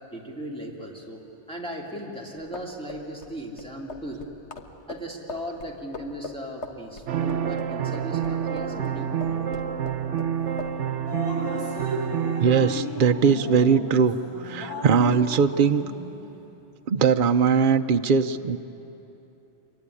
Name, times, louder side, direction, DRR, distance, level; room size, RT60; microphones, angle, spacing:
voice 1, 0.1-1.2 1.5-4.2 4.9-9.6, equal, 5° left, -2 dB, 2.7 m, -37 dB
sound 1, 2.4-8.9 9.2-10.3 10.6-10.8, left 3 dB, 70° left, 1.7 m, -40 dB
sound 2, 7.1-12.8, right 8 dB, 80° right, 1.1 m, -28 dB
Drip, 11.1-16.3, equal, 25° right, 8.0 m, -35 dB
voice 2, 12.4-15.8 16.9-18.6, right 6 dB, 50° right, 9 dB, 0.8 m, -20 dB
25.5 x 23.5 x 9.8 m, 3.0 s
omnidirectional pair, 1.2 m